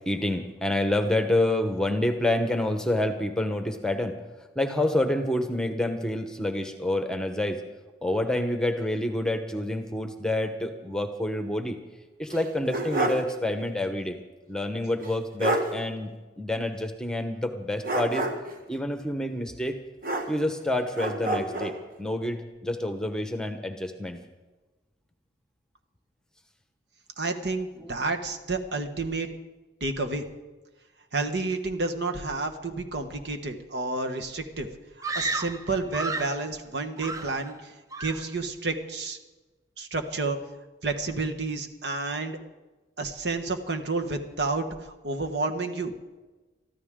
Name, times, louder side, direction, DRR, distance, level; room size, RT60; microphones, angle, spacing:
voice 1, 0.1-4.2 4.5-7.6 8.0-11.8 12.2-14.2 14.5-18.3 18.7-19.8 20.3-24.2 27.8-27.9, left 1 dB, 5° left, 6 dB, 1.0 m, -28 dB
sound 1, 12.3-13.3 13.6-13.7 15.0-15.1 15.4-15.7 17.8-18.6 20.0-20.6 21.0-21.8, right 2 dB, 45° right, 1.6 m, -28 dB
voice 2, 27.2-29.3 29.8-30.2 31.1-34.7 35.1-37.7 38.0-39.2 39.8-40.4 40.8-42.4 43.0-45.9, right 3 dB, 70° right, 5 dB, 1.4 m, -30 dB
Screaming, 35.0-36.4 37.0-37.6 37.9-38.3, right 3 dB, 20° right, 0.5 m, -33 dB
23.5 x 14.0 x 3.8 m, 1.2 s
head